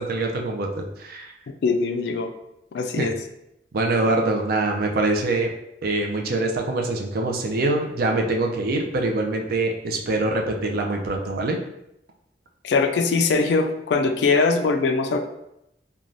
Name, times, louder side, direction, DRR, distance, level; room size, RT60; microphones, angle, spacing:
voice 1, 0.0-1.3 3.0-3.1 3.7-5.5 5.8-11.6, right 2 dB, 60° right, 2 dB, 0.4 m, -24 dB
voice 2, 1.6-2.3 2.7-3.2 4.0-4.1 12.6-15.2, left 4 dB, 65° left, 6 dB, 0.3 m, -21 dB
3.1 x 2.2 x 2.5 m, 0.83 s
head